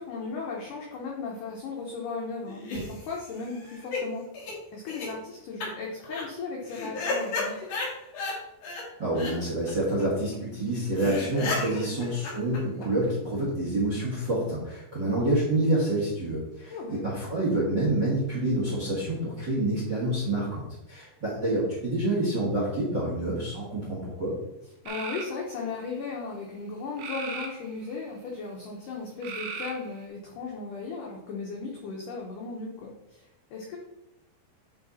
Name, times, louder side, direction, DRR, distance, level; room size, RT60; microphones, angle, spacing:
voice 1, 0.0-7.7 11.8-12.0 16.7-17.1 24.8-33.8, left 4 dB, 85° left, -2 dB, 1.8 m, -36 dB
sound 1, 2.5-4.0 4.3-4.5 4.9-5.1 5.6-5.7 6.0-6.2 6.7-8.4 8.6-8.8 9.1-9.3 9.7-9.8 10.0-10.1 10.3-10.4 10.7-10.8 11.0-13.1, left 3 dB, 55° left, 3.0 m, -33 dB
voice 2, 9.0-20.6 20.9-24.3, right 1 dB, 50° right, -4 dB, 1.3 m, -27 dB
sound 2, 24.9-25.3 27.0-28.0 29.2-30.0, right 5 dB, 70° right, 2.0 m, -37 dB
10.5 x 4.0 x 4.2 m, 0.89 s
omnidirectional pair, 5.2 m